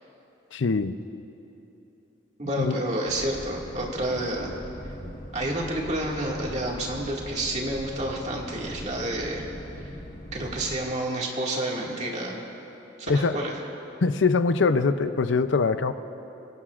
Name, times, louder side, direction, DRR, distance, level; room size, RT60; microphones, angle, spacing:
voice 1, 0.5-1.0 2.6-2.8 13.1-13.4 14.0-15.9, left 4 dB, 75° left, 11 dB, 0.6 m, -23 dB
voice 2, 2.4-4.5 5.3-9.4 10.3-12.4 13.0-13.6, right 1 dB, 35° right, -2 dB, 2.1 m, -29 dB
sound 1, 3.1-10.8, equal, 45° left, 1.2 m, -40 dB
27.5 x 17.5 x 2.5 m, 3.0 s
head